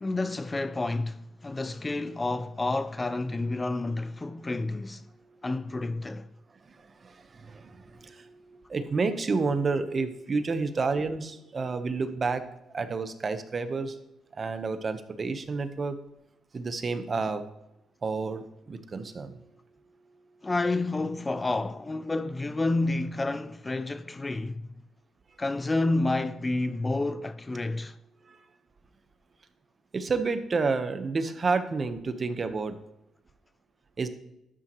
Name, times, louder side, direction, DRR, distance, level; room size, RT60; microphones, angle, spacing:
voice 1, 0.0-5.1 5.4-6.3 20.4-24.6 25.4-28.0, left 2 dB, 20° left, 0.4 m, -29 dB
voice 2, 6.7-12.4 12.7-14.0 14.4-16.0 16.5-17.4 18.0-19.4 28.3-28.4 29.9-32.8 34.0-34.1, right 4 dB, 35° right, 1.1 m, -30 dB
12.0 x 9.0 x 3.1 m
cardioid pair, 90°, 0 cm